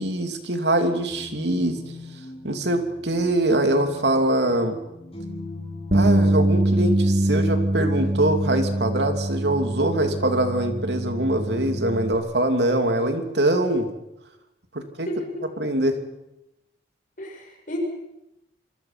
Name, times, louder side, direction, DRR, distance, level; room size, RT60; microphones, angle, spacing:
voice 1, 0.0-1.8 2.4-4.7 5.9-13.9 14.7-15.1 15.4-16.0, right 1 dB, 75° right, 6 dB, 3.1 m, -23 dB
sound 1, 1.1-7.0, left 2 dB, 35° left, 6.8 m, -40 dB
Bass guitar, 5.9-12.2, right 1 dB, 50° right, 2.0 m, -23 dB
voice 2, 17.2-17.8, left 1 dB, 50° left, 1 dB, 6.8 m, -33 dB
27.0 x 23.5 x 6.0 m, 0.90 s
head